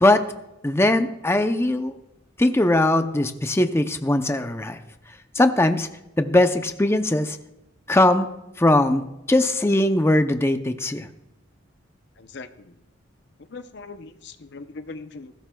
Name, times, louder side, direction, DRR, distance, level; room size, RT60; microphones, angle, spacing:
voice 1, 0.6-2.0 2.4-4.8 5.3-5.9 6.2-7.4 7.9-8.3 8.6-11.1, left 1 dB, 15° left, 7 dB, 0.6 m, -20 dB
voice 2, 12.2-12.7 13.5-15.3, left 3 dB, 60° left, 10 dB, 0.7 m, -40 dB
20.0 x 16.0 x 2.3 m, 0.91 s
head